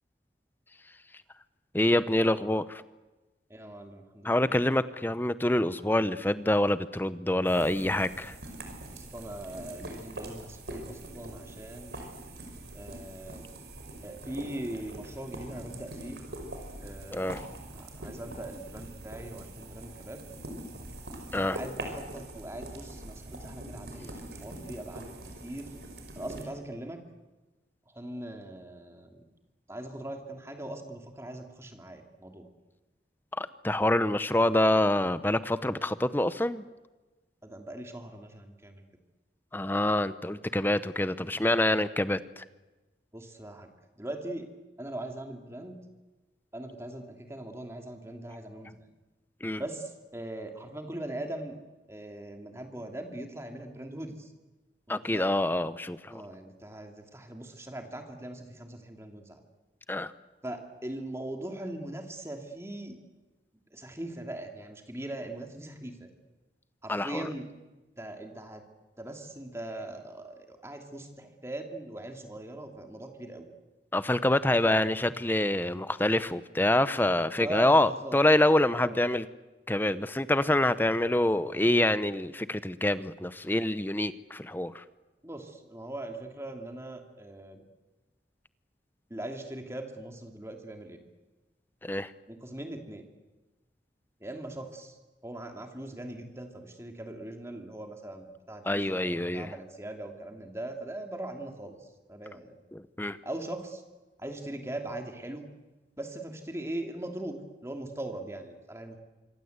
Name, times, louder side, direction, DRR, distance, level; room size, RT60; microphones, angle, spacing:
voice 1, 1.7-2.8 4.2-8.3 17.1-17.4 21.3-21.6 33.4-36.6 39.5-42.4 49.4-49.6 54.9-56.2 59.9-60.1 66.9-67.3 73.9-79.2 79.7-84.8 91.8-92.1 98.6-99.5 102.7-103.2, left 1 dB, 10° left, 14 dB, 0.8 m, -26 dB
voice 2, 3.5-4.6 7.8-8.2 8.9-12.0 12.7-13.5 14.0-16.2 16.8-17.4 17.7-20.2 21.4-25.7 26.1-27.0 27.9-29.2 29.7-32.5 37.4-38.8 43.1-43.7 44.0-44.5 44.8-45.8 46.5-48.9 49.6-51.6 51.9-54.3 54.9-55.2 56.1-59.4 60.4-63.0 63.7-66.1 66.8-67.4 68.0-68.6 69.0-73.5 74.7-74.8 77.4-78.2 78.8-79.0 85.2-87.6 89.1-91.0 92.3-93.1 94.2-95.0 95.2-102.6 103.2-103.8 104.2-105.4 106.0-109.0, right 1 dB, 15° right, 4 dB, 2.8 m, -40 dB
sound 1, 7.4-26.4, right 1 dB, 70° right, 5.1 m, -43 dB
26.0 x 24.0 x 8.1 m, 1.1 s
head